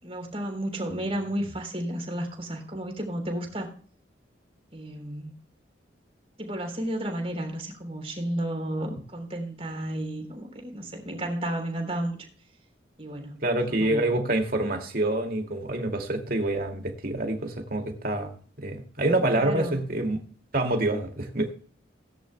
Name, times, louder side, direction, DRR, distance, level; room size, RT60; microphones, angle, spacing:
voice 1, 0.0-3.7 4.7-5.3 6.4-12.2 13.0-13.4 13.7-14.2 19.3-19.8, right 1 dB, 30° right, 3 dB, 3.6 m, -32 dB
voice 2, 13.4-20.2 20.5-21.5, right 1 dB, 50° right, 3 dB, 2.3 m, -27 dB
18.5 x 10.5 x 2.2 m, 0.43 s
head